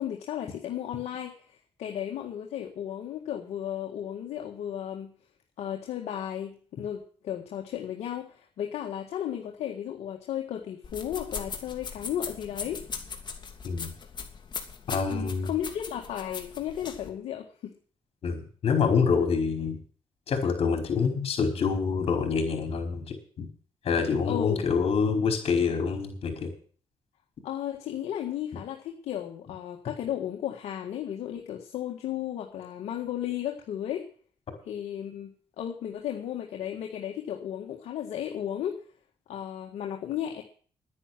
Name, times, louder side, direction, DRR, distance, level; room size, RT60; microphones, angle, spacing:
voice 1, 0.0-5.1 5.6-12.8 15.1-17.7 24.3-24.6 27.4-34.1 34.7-35.3 35.6-38.8 39.3-40.4, left 10 dB, 85° left, 1 dB, 1.8 m, -34 dB
sound 1, 10.8-17.1, left 5 dB, 45° left, 3.0 m, -39 dB
voice 2, 14.9-15.5 18.2-19.8 20.3-23.5 23.8-26.5, left 5 dB, 65° left, 3 dB, 4.9 m, -26 dB
11.0 x 9.9 x 7.6 m, 0.44 s
cardioid pair, 70°, 11 cm